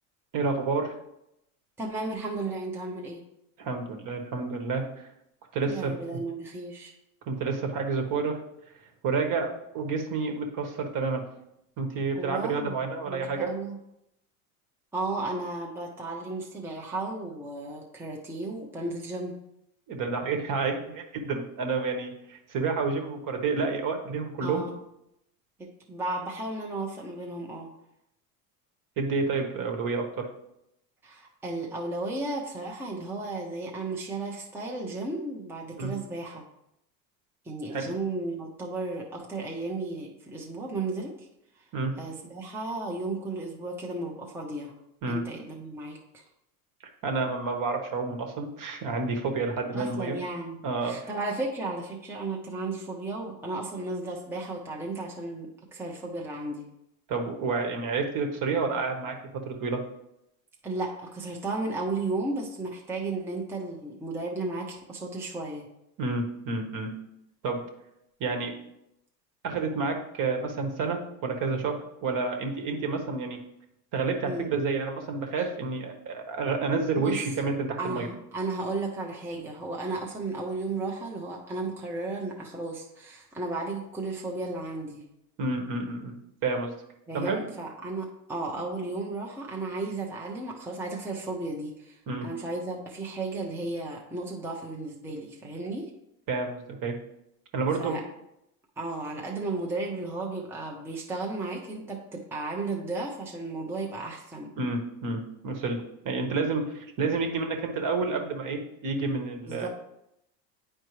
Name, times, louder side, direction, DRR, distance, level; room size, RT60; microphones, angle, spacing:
voice 1, 0.3-0.9 3.6-5.1 5.5-5.9 7.3-8.4 9.0-11.2 11.8-13.5 19.9-24.6 29.0-30.3 35.8-35.9 37.7-37.9 41.7-41.9 45.0-45.2 47.0-50.2 50.6-51.0 57.1-59.8 66.0-66.9 67.4-67.6 68.2-68.5 69.4-73.4 73.9-78.1 85.4-86.7 87.1-87.4 92.1-92.3 96.3-96.9 97.5-98.0 104.6-109.7, right 4 dB, 40° right, 3 dB, 1.3 m, -29 dB
voice 2, 1.8-3.2 5.6-6.9 12.1-13.8 14.9-19.4 24.4-24.7 25.6-27.7 31.0-36.4 37.4-41.3 41.5-41.7 42.0-44.7 45.1-46.2 49.7-56.7 60.6-65.7 74.3-74.5 75.4-75.5 76.9-77.2 77.8-85.0 87.1-95.9 97.8-98.0 98.8-104.5 109.5-109.7, right 2 dB, 5° right, -2 dB, 0.8 m, -34 dB
9.5 x 4.4 x 3.2 m, 0.83 s
supercardioid pair, 105°, 48 cm